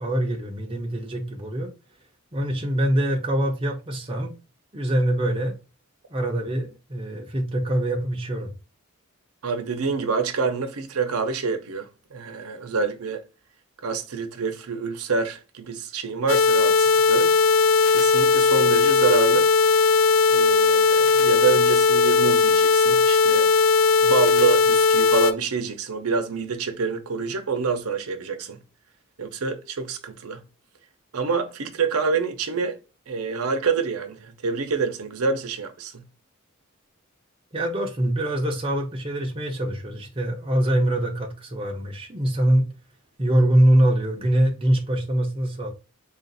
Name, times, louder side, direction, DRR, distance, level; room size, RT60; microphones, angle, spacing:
voice 1, 0.0-1.7 2.3-4.3 4.7-5.6 6.1-8.5 37.5-42.7 43.2-45.7, right 1 dB, 25° right, 0.7 m, -23 dB
voice 2, 9.4-13.2 13.8-17.3 17.9-19.5 20.3-23.5 24.0-28.6 29.2-30.4 31.1-32.8 33.1-36.0, right 5 dB, 90° right, 0.7 m, -27 dB
sound 1, 16.3-25.3, left 4 dB, 65° left, 0.4 m, -18 dB
3.7 x 2.5 x 4.0 m
head